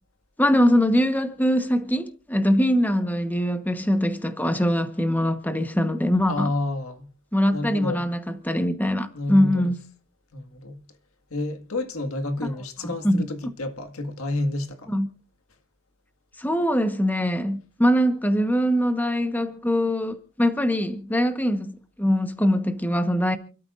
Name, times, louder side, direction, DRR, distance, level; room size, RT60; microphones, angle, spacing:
voice 1, 0.4-6.5 7.3-9.8 12.8-13.2 14.9-15.1 16.4-23.4, equal, 10° left, 1.1 m, -22 dB
voice 2, 6.3-7.1 7.5-8.1 9.1-9.7 10.3-10.8 11.3-14.9, left 2 dB, 85° left, 1.8 m, -30 dB
28.5 x 13.0 x 2.5 m
head